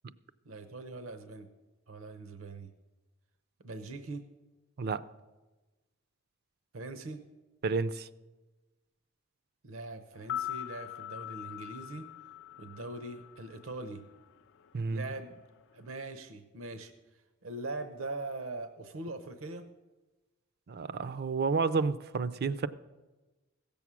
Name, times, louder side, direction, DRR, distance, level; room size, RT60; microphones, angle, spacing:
voice 1, 0.5-1.5 1.9-2.7 3.6-4.2 6.7-7.2 9.6-12.1 12.6-14.0 14.9-15.4 15.7-16.9 17.4-19.7, right 2 dB, 75° right, 9 dB, 0.8 m, -41 dB
voice 2, 7.6-8.1 14.7-15.1 20.7-22.7, right 4 dB, 50° right, 15 dB, 0.4 m, -30 dB
sound 1, 10.1-14.3 14.6-14.7, left 12 dB, 60° left, 0.5 m, -42 dB
16.5 x 7.1 x 6.1 m, 1.2 s
head